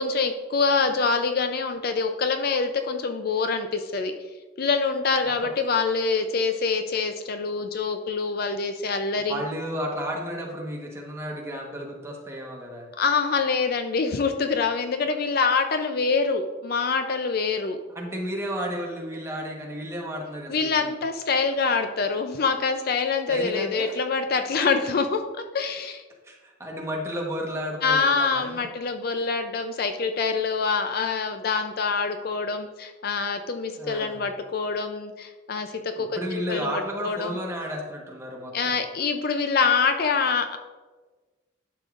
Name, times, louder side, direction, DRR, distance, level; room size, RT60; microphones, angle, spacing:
voice 1, 0.0-4.1 4.6-9.4 12.9-17.8 20.5-26.0 27.8-37.4 38.5-40.6, left 4 dB, 50° left, 7 dB, 0.4 m, -25 dB
voice 2, 9.3-12.9 17.9-21.0 23.3-24.0 26.2-28.6 33.7-34.2 36.0-38.8, equal, 15° right, -1 dB, 1.2 m, -33 dB
11.5 x 6.8 x 2.5 m, 1.3 s
head